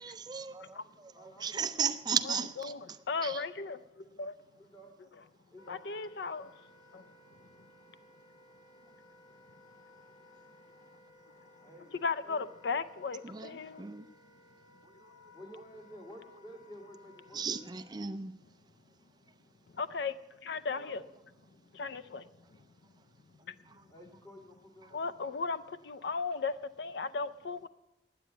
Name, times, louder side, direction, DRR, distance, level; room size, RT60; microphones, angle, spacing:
voice 1, 0.0-3.0 3.2-3.4 4.2-4.3 13.2-14.0 17.3-18.3 23.7-23.8, right 6 dB, 25° right, 0.4 m, -36 dB
voice 2, 1.1-1.9 4.7-4.9 5.5-5.8 11.6-11.9 12.2-12.5 15.3-17.5 20.7-21.0 23.9-25.1, equal, 20° left, 2.7 m, -52 dB
voice 3, 3.1-3.8 4.2-4.3 5.7-6.5 6.9-7.0 12.0-13.9 19.7-20.2 20.4-21.0 21.7-22.2 24.9-27.7, left 4 dB, 65° left, 0.5 m, -36 dB
Wind instrument woodwind instrument, 5.6-17.9, left 2 dB, 80° left, 3.4 m, -60 dB
9.3 x 9.2 x 9.0 m
head